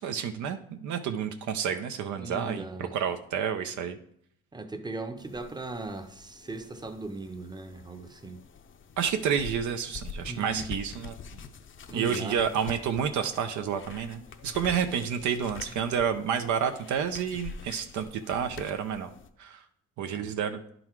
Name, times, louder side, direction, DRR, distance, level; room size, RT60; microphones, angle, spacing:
voice 1, 0.0-4.0 9.0-11.4 11.9-19.1 19.4-19.6 20.0-20.6, right 7 dB, 75° right, 0.6 m, -30 dB
voice 2, 2.2-2.9 4.5-8.4 10.3-10.7 11.9-12.4 20.1-20.3, right 2 dB, 15° right, 0.7 m, -38 dB
sound 1, 5.2-19.3, left 6 dB, 40° left, 0.6 m, -46 dB
10.5 x 3.9 x 4.5 m
cardioid pair, 90°, 30 cm